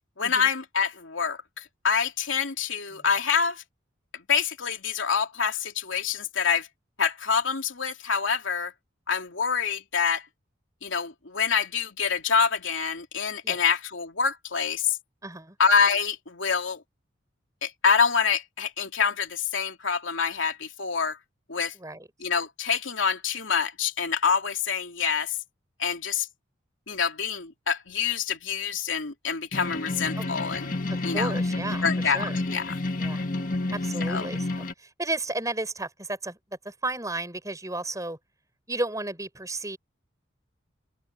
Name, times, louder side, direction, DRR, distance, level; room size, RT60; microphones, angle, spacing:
voice 1, 0.2-3.6 4.3-6.7 7.0-8.7 9.1-10.2 10.8-15.0 15.6-16.8 17.6-21.2 21.5-21.7 22.2-25.3 25.8-26.3 26.9-30.8 31.0-31.4 31.8-32.8 34.1-34.3, left 6 dB, 85° left, 2.8 m, -26 dB
voice 2, 15.2-15.6 21.8-22.1 30.2-30.3 30.9-32.4 33.0-33.3 33.7-36.4 36.6-38.2 38.7-39.8, right 2 dB, 15° right, 7.2 m, -33 dB
sound 1, 29.5-34.7, left 2 dB, 45° left, 1.7 m, -30 dB
open air
head